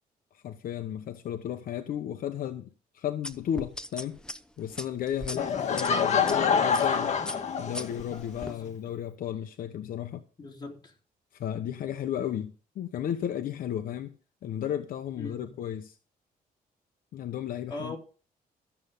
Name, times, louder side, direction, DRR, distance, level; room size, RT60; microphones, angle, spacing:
voice 1, 0.3-2.7 2.9-4.2 4.6-7.2 7.6-10.2 11.3-14.1 14.4-16.0 17.1-18.0, left 10 dB, 65° left, 1.0 m, -34 dB
sound 1, 3.2-6.4 6.7-7.0 7.3-8.5, left 1 dB, 5° left, 0.8 m, -39 dB
Laughter / Crowd, 5.4-8.2, left 6 dB, 45° left, 1.8 m, -26 dB
voice 2, 10.4-10.9 15.2-15.5 17.7-18.0, left 3 dB, 25° left, 3.6 m, -40 dB
13.5 x 8.1 x 5.4 m
cardioid pair, 145°, 16 cm